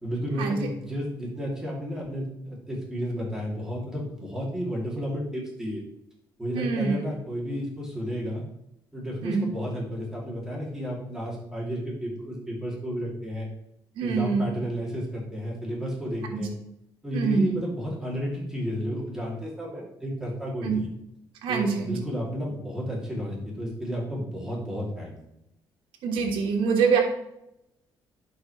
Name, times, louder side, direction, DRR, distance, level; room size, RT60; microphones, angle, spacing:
voice 1, 0.0-5.8 6.4-8.4 8.9-13.5 14.0-16.5 17.0-20.9 21.5-25.2, equal, 5° right, -4 dB, 2.6 m, -32 dB
voice 2, 6.5-7.0 9.2-9.5 14.0-14.5 16.3-16.4 17.1-17.5 20.6-20.8 21.4-22.0 26.0-27.0, right 5 dB, 85° right, 1 dB, 1.4 m, -24 dB
11.0 x 4.8 x 3.1 m, 0.81 s
cardioid pair, 120°, 8 cm